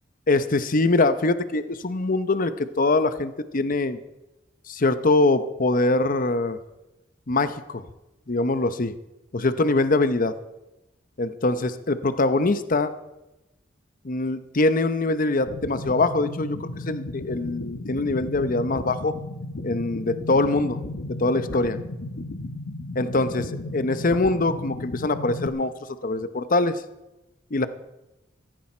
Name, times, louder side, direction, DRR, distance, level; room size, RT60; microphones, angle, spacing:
voice 1, 0.3-4.0 4.7-6.6 7.3-7.9 8.3-8.9 9.3-10.3 11.2-12.9 14.0-19.1 19.6-20.8 21.2-21.8 22.9-25.7 26.0-26.8 27.5-27.7, left 2 dB, 45° left, 12 dB, 0.8 m, -23 dB
sound 1, 15.5-25.5, left 1 dB, 90° left, 1.3 m, -34 dB
15.5 x 15.5 x 4.4 m, 0.96 s
head